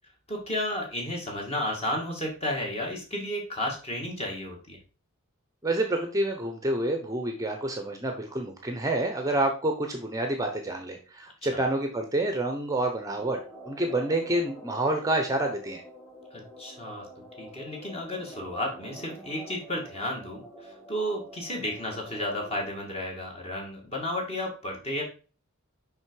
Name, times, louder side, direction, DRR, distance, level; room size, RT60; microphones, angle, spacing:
voice 1, 0.3-4.8 11.4-11.6 16.3-17.1 17.4-25.0, left 1 dB, 30° left, 0 dB, 2.2 m, -33 dB
voice 2, 5.6-13.4 13.7-15.8, right 1 dB, 15° right, 4 dB, 0.9 m, -28 dB
sound 1, 13.1-22.6, equal, 15° left, 2.2 m, -47 dB
6.3 x 5.3 x 4.7 m, 0.37 s
head